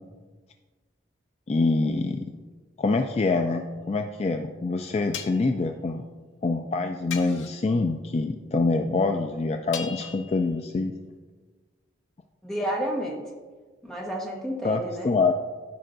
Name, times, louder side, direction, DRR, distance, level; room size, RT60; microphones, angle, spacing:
voice 1, 1.5-2.3 2.8-6.0 6.4-10.9 14.6-15.3, left 3 dB, 35° left, 5 dB, 0.3 m, -25 dB
sound 1, 3.3-3.4 5.1-5.5 7.1-7.7 9.7-10.6, left 8 dB, 90° left, 0.7 m, -39 dB
voice 2, 12.4-13.2 13.8-15.1, equal, 5° left, -3 dB, 1.3 m, -30 dB
13.0 x 5.5 x 2.6 m, 1.4 s
head